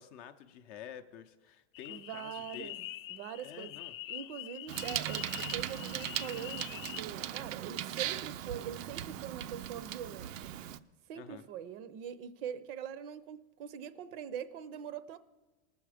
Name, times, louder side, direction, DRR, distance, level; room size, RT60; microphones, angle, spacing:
voice 1, 0.0-2.8 3.4-4.0 11.1-11.5, left 9 dB, 35° left, 0.6 m, -49 dB
sound 1, 1.7-7.0, left 15 dB, 85° left, 0.6 m, -45 dB
voice 2, 1.9-3.8 4.1-10.5 11.1-15.2, right 9 dB, 45° right, 0.6 m, -43 dB
Bicycle, 4.7-10.8, right 11 dB, 90° right, 0.6 m, -38 dB
19.5 x 7.1 x 4.9 m
supercardioid pair, 150°, 38 cm